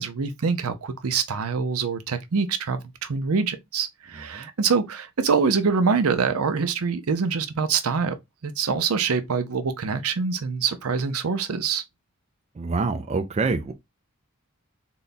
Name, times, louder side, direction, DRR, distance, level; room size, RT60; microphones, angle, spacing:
voice 1, 0.0-8.2 8.4-11.8, right 5 dB, 70° right, 0.6 m, -25 dB
voice 2, 12.6-13.7, right 4 dB, 30° right, 0.4 m, -26 dB
3.9 x 2.2 x 3.8 m
head